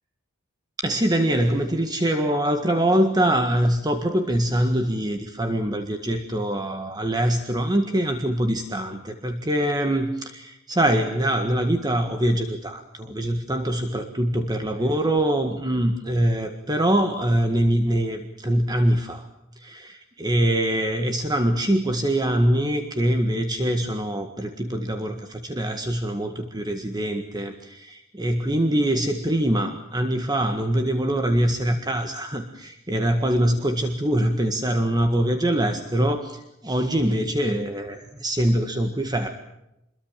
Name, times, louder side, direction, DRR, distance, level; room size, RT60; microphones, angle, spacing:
voice 1, 0.8-19.3 19.6-39.3, right 1 dB, 20° right, 6 dB, 1.8 m, -23 dB
28.0 x 22.5 x 7.5 m, 0.87 s
head